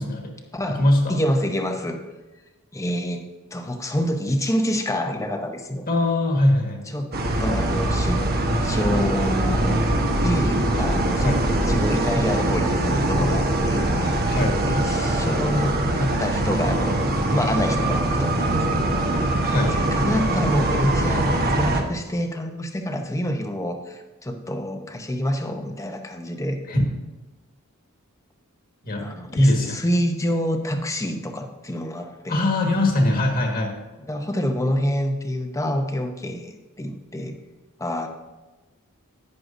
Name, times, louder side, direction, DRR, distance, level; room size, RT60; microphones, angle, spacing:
voice 1, 0.0-0.4 0.7-1.2 5.9-6.8 11.2-11.4 14.3-14.6 19.4-19.8 26.7-26.8 28.8-29.1 29.4-29.8 32.3-33.8, left 1 dB, 45° left, 1 dB, 1.6 m, -21 dB
voice 2, 0.5-0.8 1.1-2.0 2.7-3.3 3.5-5.9 6.9-7.1 7.4-8.2 8.6-9.8 10.2-11.4 11.6-14.4 14.6-19.2 19.7-26.6 29.0-32.4 34.1-37.4 37.8-38.1, equal, 15° left, 5 dB, 0.8 m, -27 dB
sound 1, 7.1-21.8, right 1 dB, 45° right, 1.1 m, -22 dB
11.0 x 9.5 x 2.6 m, 1.2 s
head